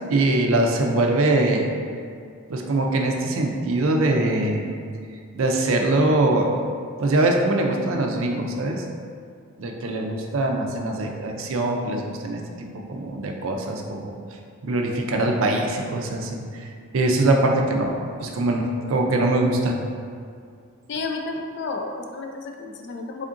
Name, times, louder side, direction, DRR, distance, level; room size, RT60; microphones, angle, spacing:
voice 1, 0.1-1.7 2.5-4.7 5.3-6.5 7.0-8.8 9.6-14.1 14.6-16.7 16.9-19.8, right 2 dB, 65° right, 2 dB, 0.4 m, -22 dB
voice 2, 20.9-23.3, left 3 dB, 55° left, 3 dB, 0.3 m, -31 dB
3.6 x 3.5 x 2.5 m, 2.2 s
head